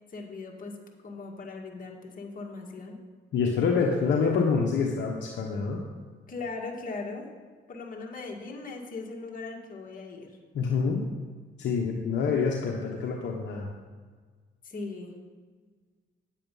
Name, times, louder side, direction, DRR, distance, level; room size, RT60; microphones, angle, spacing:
voice 1, 0.1-0.8 1.0-3.0 6.3-7.3 7.7-10.4 14.6-15.2, left 3 dB, 45° left, 0 dB, 2.0 m, -39 dB
voice 2, 3.3-5.8 10.5-11.1 11.6-13.7, left 5 dB, 65° left, 0 dB, 1.0 m, -26 dB
9.3 x 7.6 x 5.4 m, 1.5 s
cardioid pair, 90°, 20 cm